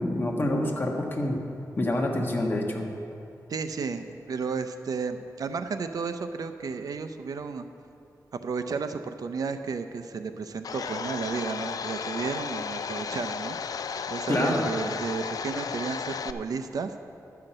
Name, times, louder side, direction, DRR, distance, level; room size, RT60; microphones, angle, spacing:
voice 1, 0.0-1.4 1.8-2.9 14.3-14.7, left 1 dB, 35° left, 0 dB, 1.4 m, -27 dB
voice 2, 3.5-7.7 8.4-13.6 14.1-16.9, right 5 dB, 75° right, 8 dB, 0.6 m, -33 dB
Domestic sounds home sounds, 10.6-16.3, left 6 dB, 75° left, 0.4 m, -34 dB
11.5 x 5.8 x 7.8 m, 2.7 s
wide cardioid pair, 105°, 6 cm